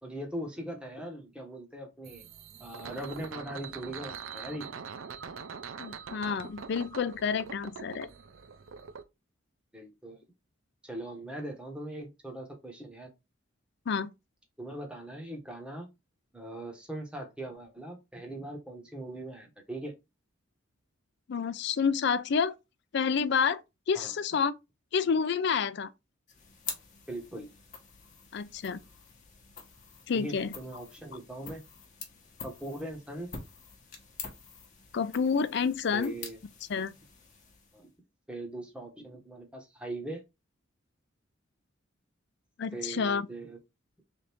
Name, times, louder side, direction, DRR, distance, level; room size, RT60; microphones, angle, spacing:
voice 1, 0.0-2.2 2.6-4.7 9.7-10.2 10.8-13.1 14.6-15.9 16.3-19.9 23.9-24.2 27.1-27.5 30.1-31.6 32.4-33.3 35.9-36.4 37.7-37.9 38.3-40.2 42.7-43.6, right 1 dB, 5° right, 1.1 m, -40 dB
sound 1, 2.0-9.0, right 6 dB, 80° right, 0.5 m, -43 dB
voice 2, 5.8-8.1 13.9-14.1 21.3-22.5 22.9-23.6 23.9-24.5 24.9-25.9 28.3-28.8 30.1-30.5 34.9-36.1 36.7-36.9 42.6-43.3, left 6 dB, 55° left, 0.4 m, -29 dB
sound 2, 26.3-38.0, left 5 dB, 40° left, 1.1 m, -47 dB
3.5 x 2.6 x 4.3 m
head